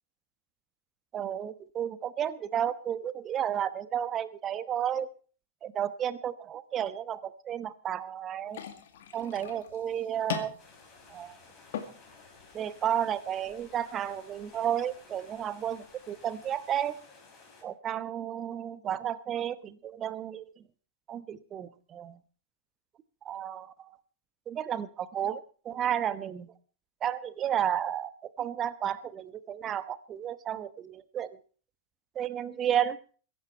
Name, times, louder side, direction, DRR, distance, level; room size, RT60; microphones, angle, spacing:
voice 1, 1.1-5.1 5.6-8.6 9.1-10.5 11.1-11.3 12.5-17.0 17.6-20.6 21.1-22.2 23.2-23.9 24.5-26.5 27.0-31.4 32.1-33.0, right 9 dB, 30° right, 15 dB, 1.1 m, -32 dB
sound 1, 8.5-16.5, left 9 dB, 55° left, 2.2 m, -44 dB
sound 2, 10.6-17.6, left 4 dB, 25° left, 6.2 m, -55 dB
22.0 x 11.0 x 4.5 m, 0.42 s
figure-of-eight pair, 90°, 0 cm